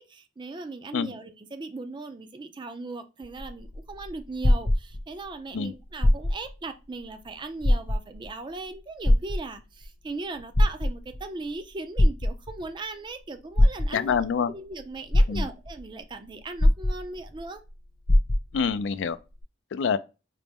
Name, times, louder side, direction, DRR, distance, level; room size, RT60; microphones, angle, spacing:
voice 1, 0.0-14.2 14.5-17.6, right 3 dB, 25° right, 0.4 m, -38 dB
sound 1, 3.2-5.3 5.9-6.6 7.0-7.1 7.6-8.3 9.0-9.9 10.4-11.2 12.0-12.7 13.6-14.3 14.8-14.9 15.1-15.8 16.6-17.4 17.7-17.8 18.1-18.7 19.4-19.5, left 1 dB, 50° left, 1.0 m, -21 dB
voice 2, 13.9-14.5 15.3-15.5 18.5-19.2 19.7-20.0, left 6 dB, 70° left, 0.3 m, -26 dB
4.0 x 2.0 x 3.5 m
head